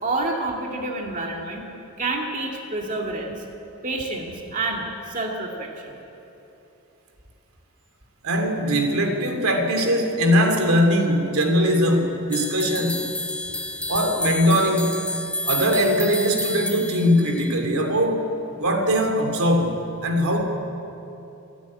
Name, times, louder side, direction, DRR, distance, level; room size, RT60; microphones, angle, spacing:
voice 1, 0.0-1.7 2.0-3.4 3.8-6.0, right 2 dB, 35° right, 0 dB, 2.3 m, -28 dB
voice 2, 8.2-13.1 13.9-15.0 15.4-18.3 18.6-20.4, equal, 85° right, 4 dB, 3.0 m, -21 dB
sound 1, 12.3-17.5, left 1 dB, 5° left, 0.4 m, -30 dB
27.0 x 11.5 x 9.8 m, 3.0 s
head